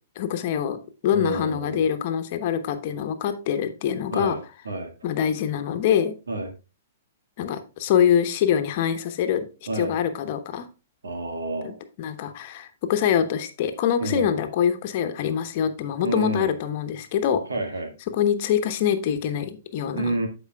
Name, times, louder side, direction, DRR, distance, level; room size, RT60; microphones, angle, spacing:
voice 1, 0.2-4.4 5.0-6.2 7.4-9.4 9.7-10.7 11.6-11.7 12.0-17.4 18.1-20.2, left 9 dB, 50° left, 7 dB, 1.1 m, -24 dB
voice 2, 1.1-1.8 4.1-4.9 6.3-6.5 9.7-9.9 11.0-11.8 14.0-14.4 16.0-16.5 17.5-17.9 19.9-20.3, right 2 dB, 80° right, 4 dB, 1.7 m, -29 dB
14.0 x 4.9 x 2.4 m, 0.31 s
hypercardioid pair, 115°, 0 cm